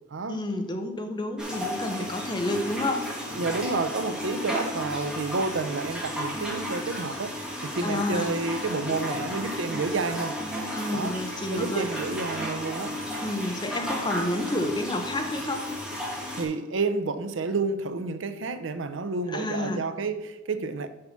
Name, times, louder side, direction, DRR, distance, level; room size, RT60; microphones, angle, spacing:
voice 1, 0.3-3.0 7.8-8.3 10.7-11.9 13.2-15.6 19.3-19.8, left 1 dB, 25° left, 0.8 m, -30 dB
sound 1, 1.4-16.4, equal, 5° right, 1.5 m, -33 dB
voice 2, 3.3-10.4 10.9-11.2 11.5-13.0 16.3-20.9, right 3 dB, 80° right, 0.6 m, -30 dB
6.6 x 5.7 x 5.7 m
head